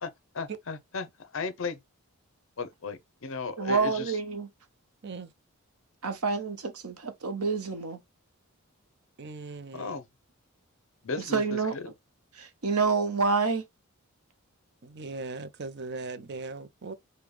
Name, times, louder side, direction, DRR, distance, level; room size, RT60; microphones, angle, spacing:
voice 1, 0.0-1.8 2.6-4.2 9.7-10.0 11.0-11.8, left 4 dB, 65° left, 0.6 m, -36 dB
voice 2, 3.6-4.5 6.0-8.0 11.3-11.9 12.4-13.6, right 4 dB, 90° right, 1.0 m, -28 dB
voice 3, 9.2-10.0 14.8-16.9, right 3 dB, 50° right, 0.6 m, -39 dB
5.1 x 2.2 x 3.2 m
head